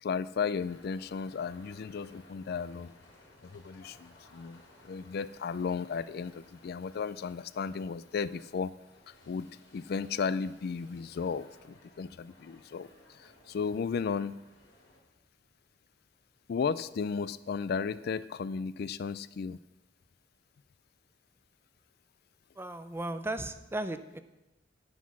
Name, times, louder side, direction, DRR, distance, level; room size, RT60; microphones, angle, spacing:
voice 1, 0.0-2.9 3.4-8.7 9.1-14.4 16.5-19.6, left 5 dB, 60° left, 17 dB, 0.4 m, -35 dB
sound 1, 0.5-15.0, left 1 dB, 90° left, 3.9 m, -59 dB
voice 2, 22.6-24.2, right 2 dB, 15° right, 10 dB, 0.6 m, -36 dB
9.7 x 9.4 x 6.2 m, 0.95 s
head